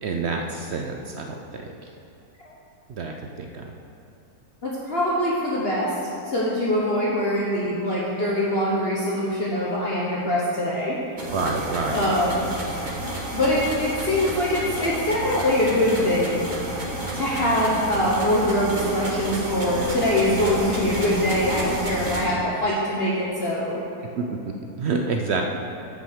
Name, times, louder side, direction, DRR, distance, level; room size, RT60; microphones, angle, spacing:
voice 1, 0.0-1.6 2.9-3.7 11.3-12.0 24.2-24.5 24.8-25.4, right 4 dB, 60° right, 2 dB, 0.7 m, -28 dB
voice 2, 4.6-6.0 6.2-11.0 11.9-12.5 13.3-16.4 17.1-23.8, left 1 dB, 45° left, -6 dB, 1.2 m, -23 dB
sound 1, 11.2-22.3, right 1 dB, 30° right, 1.3 m, -31 dB
7.7 x 6.2 x 6.6 m, 2.7 s
omnidirectional pair, 1.7 m